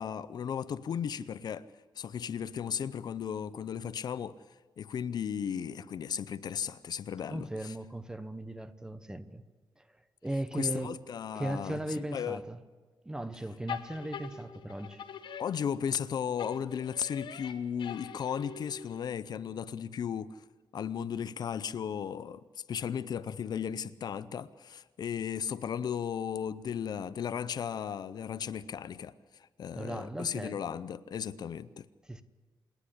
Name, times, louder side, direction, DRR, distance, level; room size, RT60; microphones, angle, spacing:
voice 1, 0.0-1.7 2.0-4.4 4.8-7.7 10.5-12.4 15.4-20.4 20.7-31.9, left 8 dB, 55° left, 0.6 m, -35 dB
voice 2, 7.3-9.4 9.8-9.9 10.2-10.9 11.3-12.6 13.0-15.0 29.7-30.6 32.0-32.2, right 1 dB, 10° right, 0.9 m, -37 dB
sound 1, 13.7-16.0 16.4-19.2, left 7 dB, 70° left, 1.4 m, -44 dB
27.5 x 10.0 x 9.9 m
wide cardioid pair, 175°, 8 cm